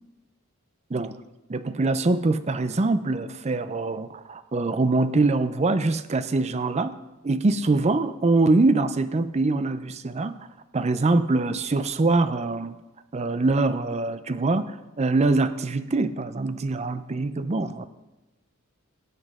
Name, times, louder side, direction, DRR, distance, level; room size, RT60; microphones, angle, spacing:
voice 1, 1.5-7.0 7.2-10.4 10.7-12.8 13.1-17.9, right 3 dB, 30° right, 12 dB, 0.5 m, -24 dB
17.5 x 7.7 x 3.6 m, 1.1 s
head